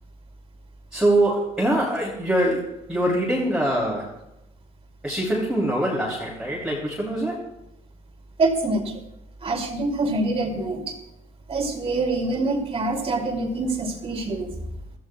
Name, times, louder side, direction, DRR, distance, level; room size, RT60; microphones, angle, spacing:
voice 1, 0.9-4.1 5.0-7.4, right 1 dB, 5° right, -5 dB, 3.0 m, -23 dB
voice 2, 8.4-9.0 9.4-11.0 11.5-14.5, right 2 dB, 35° right, 2 dB, 2.7 m, -25 dB
23.0 x 14.5 x 2.3 m, 0.87 s
cardioid pair, 110°, 17 cm